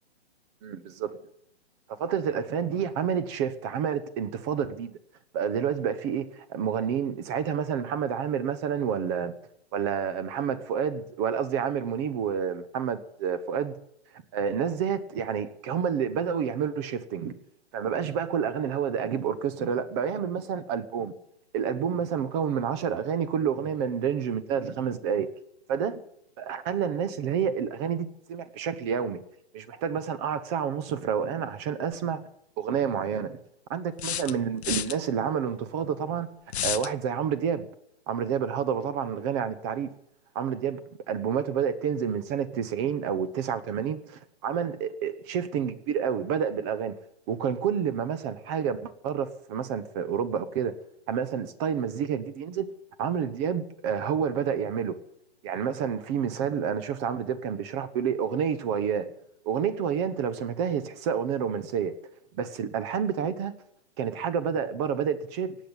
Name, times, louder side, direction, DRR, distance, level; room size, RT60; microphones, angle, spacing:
voice 1, 0.6-1.1 2.0-5.0 5.3-9.3 9.7-13.7 14.3-17.3 17.7-21.1 21.5-25.3 25.7-26.0 26.4-29.2 29.5-32.2 32.6-33.4 33.7-36.3 36.6-37.7 38.1-39.9 40.3-40.8 41.1-47.0 47.3-50.7 51.1-52.7 53.0-55.0 55.4-59.1 59.4-61.9 62.3-63.5 64.0-65.6, right 7 dB, 25° right, 0.9 m, -29 dB
sound 1, 31.9-32.0 34.0-35.0 36.5-36.9, left 11 dB, 70° left, 0.7 m, -30 dB
17.5 x 8.3 x 8.9 m
hypercardioid pair, 150°, 33 cm